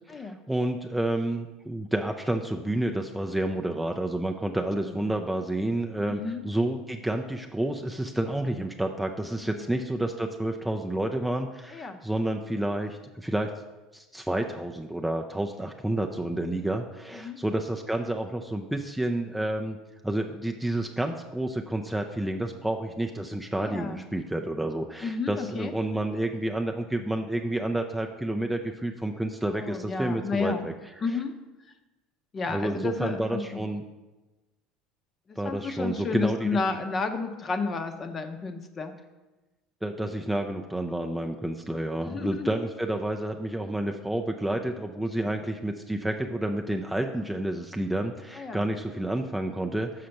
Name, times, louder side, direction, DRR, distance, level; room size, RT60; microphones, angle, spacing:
voice 1, 0.1-13.5 13.9-19.8 20.0-30.7 32.5-33.8 35.4-36.6 39.8-50.1, right 1 dB, 5° right, 3 dB, 0.4 m, -30 dB
voice 2, 6.1-6.4 9.5-9.8 11.7-12.0 17.1-17.4 23.6-24.0 25.0-25.7 29.5-30.7 31.0-31.3 32.3-33.6 35.3-38.9 42.0-42.7 45.2-45.4 48.3-48.6, left 4 dB, 30° left, 7 dB, 0.7 m, -32 dB
6.5 x 5.0 x 5.8 m, 1.1 s
supercardioid pair, 120°, 0 cm